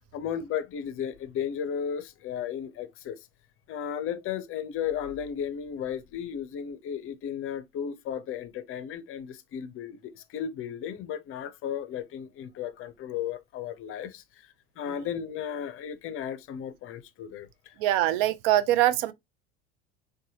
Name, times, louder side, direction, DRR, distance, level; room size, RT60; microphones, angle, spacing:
voice 1, 0.1-3.2 3.7-14.2 14.8-17.7, left 8 dB, 45° left, 0.6 m, -34 dB
voice 2, 17.8-19.1, right 14 dB, 60° right, 0.5 m, -23 dB
4.0 x 2.3 x 2.7 m
hypercardioid pair, 80°, 32 cm